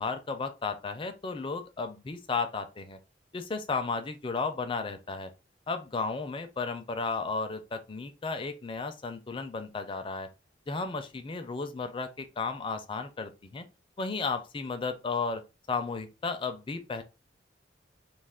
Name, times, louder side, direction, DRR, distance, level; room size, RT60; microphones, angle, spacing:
voice 1, 0.0-3.0 3.3-5.3 5.7-10.3 10.7-13.7 14.0-15.4 15.7-17.0, left 4 dB, 25° left, 0.4 m, -34 dB
2.4 x 2.4 x 3.4 m
head